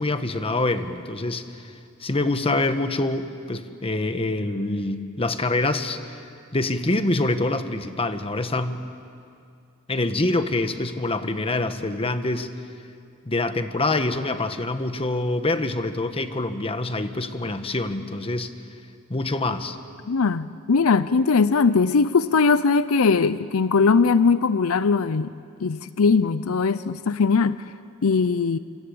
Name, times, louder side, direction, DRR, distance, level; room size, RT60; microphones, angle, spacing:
voice 1, 0.0-1.7 2.0-6.1 6.5-8.8 9.9-12.5 13.2-18.5 19.1-19.8, left 2 dB, 25° left, 9 dB, 1.2 m, -25 dB
voice 2, 20.1-25.3 25.6-27.6 28.0-28.6, left 4 dB, 70° left, 14 dB, 0.6 m, -20 dB
27.0 x 25.0 x 8.6 m, 2.4 s
head